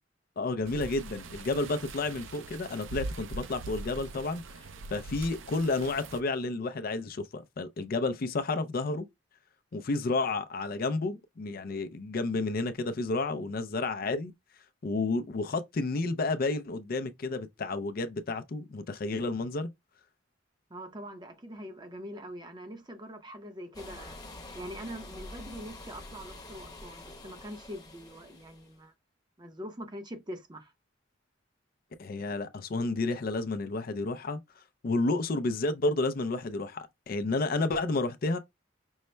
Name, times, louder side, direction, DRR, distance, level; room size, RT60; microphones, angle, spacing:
voice 1, 0.4-4.4 4.9-9.1 9.7-14.3 14.8-19.7 32.0-34.4 34.8-38.4, left 3 dB, 50° left, 0.4 m, -31 dB
sound 1, 0.6-6.2, right 2 dB, 85° right, 0.5 m, -42 dB
voice 2, 20.7-24.2 24.5-28.9 29.4-30.7, equal, 25° right, 0.7 m, -43 dB
sound 2, 23.7-28.8, left 2 dB, 20° left, 0.9 m, -46 dB
5.4 x 2.1 x 3.2 m
head